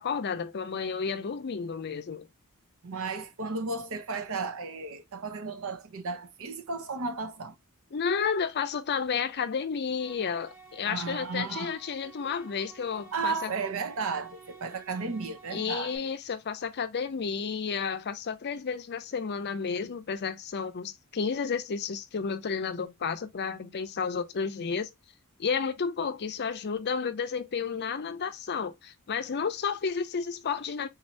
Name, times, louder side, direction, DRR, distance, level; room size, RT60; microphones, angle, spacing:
voice 1, 0.0-2.3 7.9-13.5 15.5-24.9 25.4-30.9, left 6 dB, 50° left, 0.5 m, -31 dB
voice 2, 2.8-7.5 10.9-11.7 13.1-15.9, right 4 dB, 65° right, 0.7 m, -34 dB
sound 1, 9.9-16.0, right 4 dB, 40° right, 1.3 m, -52 dB
4.0 x 2.7 x 3.0 m
head